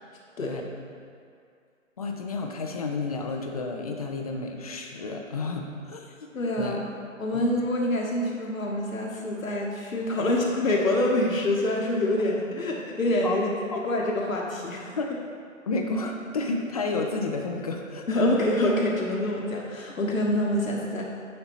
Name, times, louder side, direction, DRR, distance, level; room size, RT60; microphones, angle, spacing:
voice 1, 0.4-0.7 2.0-6.3 6.6-6.8 7.3-7.4 10.2-10.3 13.2-13.4 13.7-13.8 15.0-15.1 15.7-18.3, left 3 dB, 30° left, 2 dB, 0.4 m, -31 dB
voice 2, 6.3-6.8 7.2-13.5 13.8-15.0 18.1-21.0, left 1 dB, 80° left, -1 dB, 1.0 m, -26 dB
9.6 x 4.3 x 2.9 m, 2.3 s
figure-of-eight pair, 130°, 40 cm